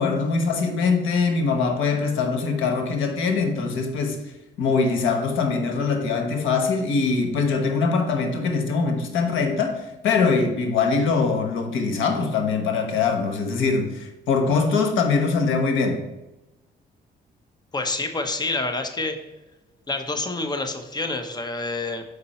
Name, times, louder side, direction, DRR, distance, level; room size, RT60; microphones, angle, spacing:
voice 1, 0.0-4.2 4.6-16.0, left 4 dB, 85° left, 1.1 m, -22 dB
voice 2, 17.7-19.2 19.9-22.0, left 2 dB, 20° left, 1.0 m, -27 dB
6.7 x 5.4 x 4.3 m
cardioid pair, 90°, 20 cm